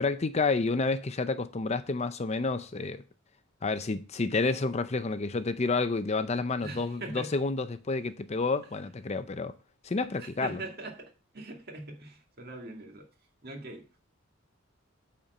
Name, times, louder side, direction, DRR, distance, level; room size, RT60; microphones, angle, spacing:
voice 1, 0.0-3.0 3.6-9.5 9.8-10.6, left 3 dB, 30° left, 0.5 m, -29 dB
voice 2, 6.6-7.4 10.2-13.1 13.4-14.1, right 2 dB, 50° right, 1.9 m, -42 dB
8.7 x 4.4 x 6.6 m
head